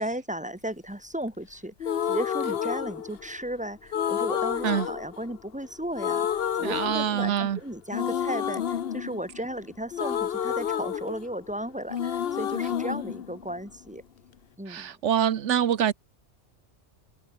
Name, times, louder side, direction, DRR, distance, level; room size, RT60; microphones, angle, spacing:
voice 1, 0.0-6.3 6.6-14.0 14.6-15.0, right 1 dB, 5° right, 2.3 m, -35 dB
sound 1, 1.8-3.5 3.9-5.7 5.9-7.5 7.9-11.6 11.9-13.9, left 9 dB, 55° left, 1.0 m, -30 dB
voice 2, 6.6-7.6 14.7-15.9, right 9 dB, 80° right, 1.2 m, -25 dB
omnidirectional pair, 1.2 m